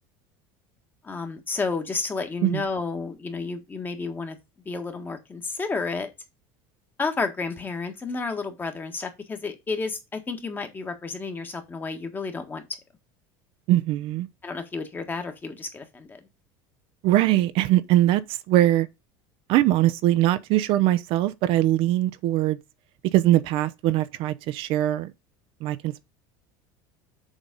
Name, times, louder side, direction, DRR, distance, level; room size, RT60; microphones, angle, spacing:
voice 1, 1.0-4.4 4.6-6.1 7.0-12.6 14.4-16.2, left 4 dB, 20° left, 1.5 m, -31 dB
voice 2, 13.7-14.3 17.0-18.2 18.5-18.9 19.5-22.6 23.1-25.1 25.6-26.0, right 14 dB, 55° right, 0.7 m, -21 dB
7.2 x 4.0 x 5.2 m
cardioid pair, 140°, 11 cm